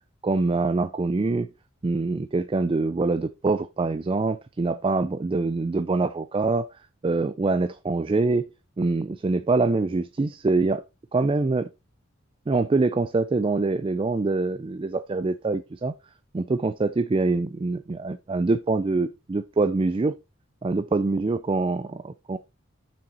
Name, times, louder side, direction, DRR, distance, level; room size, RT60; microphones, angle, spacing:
voice 1, 0.2-1.5 1.8-6.7 7.0-8.5 8.8-10.8 11.1-11.7 12.5-15.9 16.3-20.1 20.6-22.4, right 3 dB, 25° right, 0.3 m, -24 dB
7.0 x 6.2 x 4.1 m
head